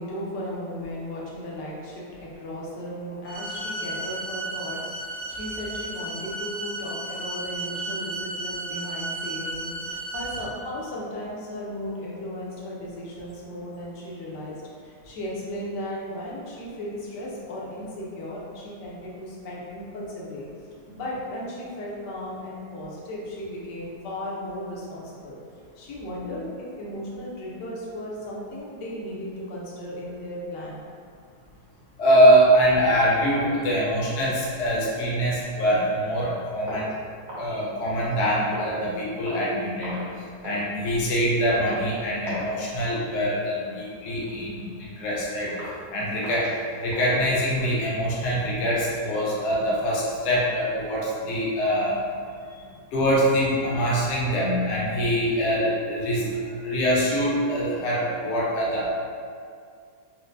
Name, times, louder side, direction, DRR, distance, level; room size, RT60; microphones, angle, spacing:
voice 1, 0.0-25.4 25.7-30.9, left 1 dB, 80° left, -5 dB, 1.4 m, -36 dB
sound 1, 3.3-10.4, right 2 dB, 65° right, 1.5 m, -33 dB
voice 2, 32.0-36.9 37.4-40.0 40.4-45.5 45.9-46.5 46.8-52.0 52.5-58.9, equal, 55° left, -6 dB, 0.9 m, -23 dB
sound 2, 36.7-38.1 38.5-38.9 39.2-39.5 39.8-40.1 40.4-40.7 41.0-41.2 41.6-41.9 42.2-42.6 42.8-43.0 43.5-43.7 44.2-44.3 44.8-44.9 45.5-45.8 46.2-47.7, equal, 45° right, 1.1 m, -39 dB
4.3 x 2.1 x 2.5 m, 2.2 s
omnidirectional pair, 1.8 m